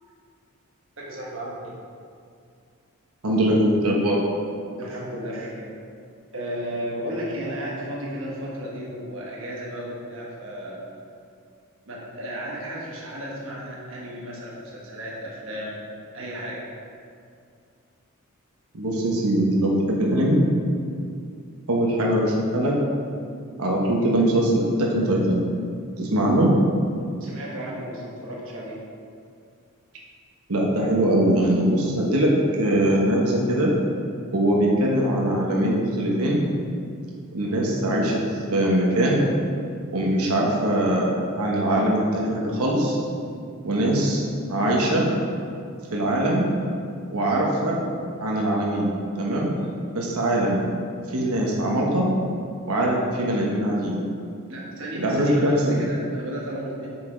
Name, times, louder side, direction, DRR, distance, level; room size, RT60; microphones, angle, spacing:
voice 1, 1.0-1.7 4.8-5.7 6.3-10.8 11.9-15.8 16.1-16.6 27.2-28.8 54.5-56.9, equal, 60° right, -5 dB, 1.3 m, -34 dB
voice 2, 3.2-4.2 18.7-20.4 21.7-22.8 23.6-25.4 26.0-26.6 30.5-32.3 32.6-33.7 34.3-36.4 37.3-38.2 38.5-39.2 39.9-43.0 43.6-44.2 44.5-45.1 45.9-46.5 47.1-47.8 48.2-48.9 49.2-49.5 49.9-50.7 51.1-52.1 52.7-54.0 55.0-55.8, right 1 dB, 85° right, -2 dB, 1.1 m, -22 dB
6.3 x 5.9 x 4.5 m, 2.3 s
head